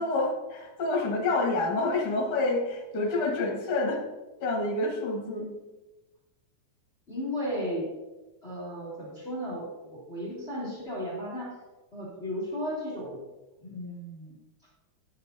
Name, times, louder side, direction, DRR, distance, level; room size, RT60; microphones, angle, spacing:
voice 1, 0.0-4.0 4.4-5.5, left 2 dB, 55° left, 0 dB, 2.3 m, -28 dB
voice 2, 7.1-7.9 8.4-11.6 11.9-13.2 13.6-14.4, equal, 25° left, -6 dB, 1.8 m, -35 dB
11.0 x 7.4 x 2.6 m, 1.1 s
omnidirectional pair, 3.6 m